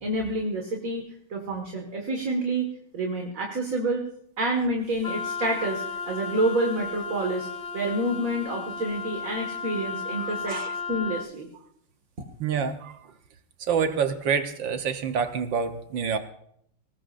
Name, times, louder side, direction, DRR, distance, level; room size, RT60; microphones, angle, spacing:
voice 1, 0.0-1.0 1.3-2.7 2.9-4.0 4.4-7.5 7.7-11.5, right 1 dB, 40° right, 1 dB, 2.1 m, -28 dB
Wind instrument woodwind instrument, 5.0-11.3, left 5 dB, 55° left, 0.7 m, -34 dB
voice 2, 12.4-13.0 13.7-16.2, right 6 dB, 65° right, 8 dB, 1.7 m, -27 dB
20.5 x 19.0 x 2.6 m, 0.70 s
omnidirectional pair, 2.3 m